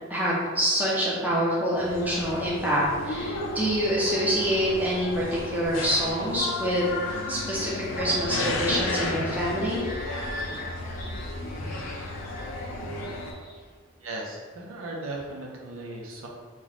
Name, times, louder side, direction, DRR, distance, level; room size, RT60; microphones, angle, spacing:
voice 1, 0.1-7.0 7.3-9.8, equal, 10° right, -6 dB, 0.6 m, -26 dB
sound 1, 1.8-13.3, left 2 dB, 85° left, 0.5 m, -34 dB
sound 2, 7.1-13.7, equal, 40° left, 0.6 m, -38 dB
voice 2, 14.0-16.3, right 2 dB, 85° right, -1 dB, 0.6 m, -37 dB
3.0 x 2.2 x 4.0 m, 1.5 s
head